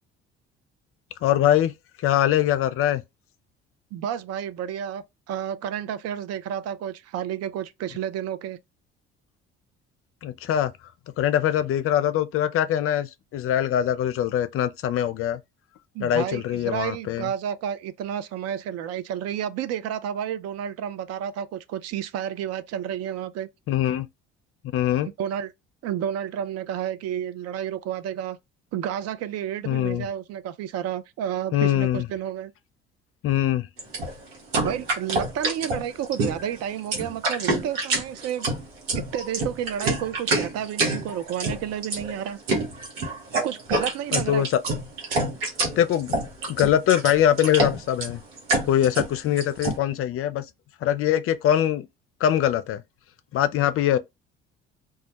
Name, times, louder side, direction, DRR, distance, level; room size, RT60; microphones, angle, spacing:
voice 1, 1.2-1.7 2.0-3.0 10.2-10.7 11.2-15.4 16.0-17.3 23.7-24.1 24.7-25.1 29.7-30.1 31.5-32.1 33.2-33.7 44.1-44.6 45.8-46.2 46.5-48.2 48.7-50.4 50.8-51.9 52.2-52.8 53.3-54.0, left 11 dB, 50° left, 0.4 m, -22 dB
voice 2, 3.9-8.6 15.9-23.5 25.2-25.5 25.8-28.4 28.7-32.5 34.6-38.5 38.9-42.4 43.4-44.5, right 10 dB, 55° right, 0.4 m, -31 dB
sound 1, 33.8-49.8, right 2 dB, 90° right, 0.9 m, -27 dB
2.2 x 2.1 x 2.8 m
hypercardioid pair, 60°, 29 cm